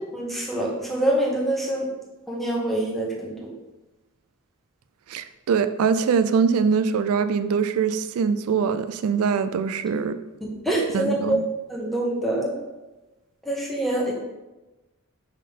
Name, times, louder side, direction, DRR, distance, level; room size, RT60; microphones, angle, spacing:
voice 1, 0.1-1.9 2.3-3.5 9.9-10.0 10.4-11.4 11.7-12.5 13.5-14.1, right 1 dB, ahead, -3 dB, 1.2 m, -25 dB
voice 2, 5.1-10.2 10.9-11.4, right 6 dB, 75° right, 12 dB, 0.3 m, -23 dB
5.3 x 3.7 x 5.4 m, 1.1 s
head